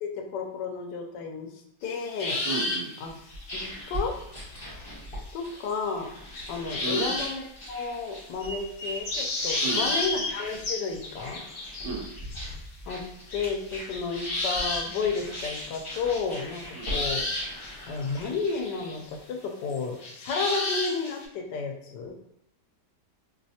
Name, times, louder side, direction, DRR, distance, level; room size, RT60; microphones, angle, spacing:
voice 1, 0.0-2.4 3.0-3.2 3.5-4.1 5.3-6.1 6.5-11.4 12.9-13.0 13.3-17.2 17.9-22.1, left 5 dB, 90° left, 3 dB, 1.2 m, -32 dB
sound 1, 1.8-4.8 5.1-6.1 6.3-7.3 7.8-7.9 8.4-12.5 13.3-19.1 19.7-21.2, left 2 dB, 60° left, 0.6 m, -32 dB
voice 2, 2.5-2.9 6.8-7.2 9.6-10.3 11.8-12.1 16.7-16.9, right 3 dB, 70° right, -1 dB, 0.5 m, -34 dB
sound 2, 3.1-19.2, equal, 20° left, 1.3 m, -41 dB
3.1 x 3.1 x 2.7 m, 0.82 s
omnidirectional pair, 1.8 m